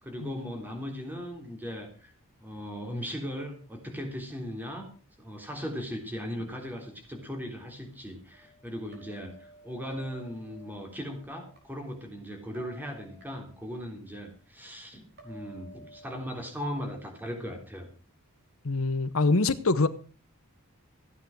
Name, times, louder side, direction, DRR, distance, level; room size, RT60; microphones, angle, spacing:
voice 1, 0.0-2.1 2.4-4.9 5.2-17.9, equal, 10° right, 3.5 m, -38 dB
sound 1, 8.3-11.6 12.5-13.8 15.2-16.1, equal, 50° right, 5.1 m, -53 dB
voice 2, 18.6-19.9, left 3 dB, 65° left, 0.9 m, -24 dB
15.5 x 9.4 x 6.0 m
head